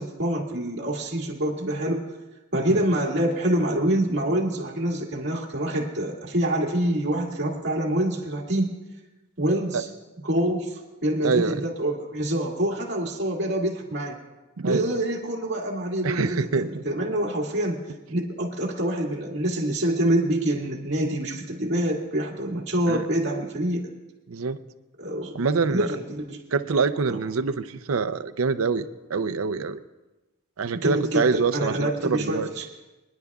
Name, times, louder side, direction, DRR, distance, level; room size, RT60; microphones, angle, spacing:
voice 1, 0.0-2.0 2.5-8.7 9.4-9.9 10.2-14.2 14.7-17.8 18.1-23.9 25.0-25.3 25.7-26.4 27.1-27.2 30.8-32.7, right 1 dB, 55° right, -1 dB, 2.1 m, -26 dB
voice 2, 11.2-11.7 14.6-15.0 16.0-16.8 22.9-23.0 24.3-24.6 25.3-25.9 26.5-29.8 30.6-32.5, right 4 dB, 85° right, 9 dB, 0.6 m, -25 dB
24.5 x 10.5 x 2.4 m, 1.1 s
head